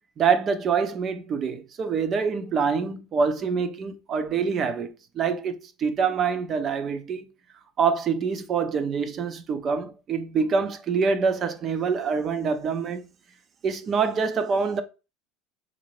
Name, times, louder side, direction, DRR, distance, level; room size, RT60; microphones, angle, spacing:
voice 1, 0.2-7.3 7.8-13.1 13.6-14.8, right 5 dB, 30° right, 0.6 m, -25 dB
3.8 x 2.7 x 3.1 m
cardioid pair, 145°, 0 cm